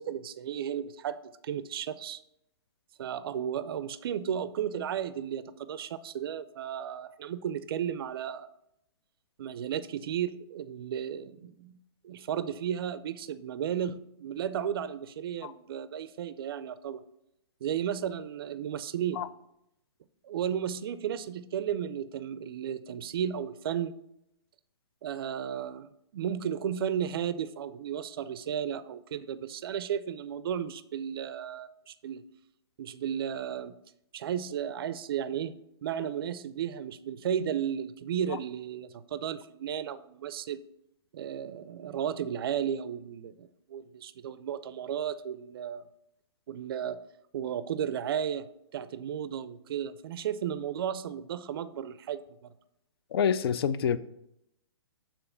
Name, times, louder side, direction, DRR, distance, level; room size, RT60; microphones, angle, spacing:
voice 1, 0.0-2.2 3.0-8.5 9.4-11.7 12.0-17.0 17.6-19.2 20.2-23.9 25.0-32.2 32.8-33.8 34.1-35.5 35.8-40.6 41.1-45.8 46.5-47.0 47.3-48.5 48.7-52.5, right 9 dB, 60° right, 15 dB, 0.4 m, -34 dB
voice 2, 53.1-54.0, left 7 dB, 60° left, 15 dB, 0.5 m, -27 dB
7.0 x 3.8 x 5.6 m, 0.80 s
hypercardioid pair, 155°, 14 cm